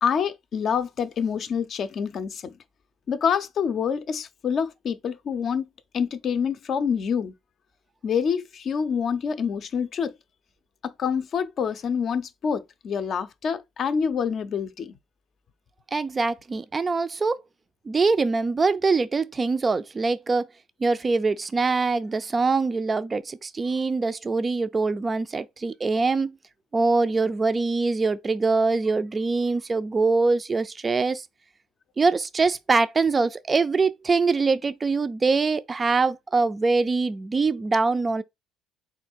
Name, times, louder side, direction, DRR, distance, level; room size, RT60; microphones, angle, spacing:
voice 1, 0.0-2.6 3.1-5.7 5.9-7.3 8.0-10.1 10.8-14.9, left 7 dB, 50° left, 0.5 m, -26 dB
voice 2, 15.9-17.4 17.9-20.5 20.8-26.3 26.7-31.2 32.0-38.2, right 4 dB, 25° right, 0.4 m, -23 dB
3.7 x 2.3 x 4.4 m
supercardioid pair, 95°, 0 cm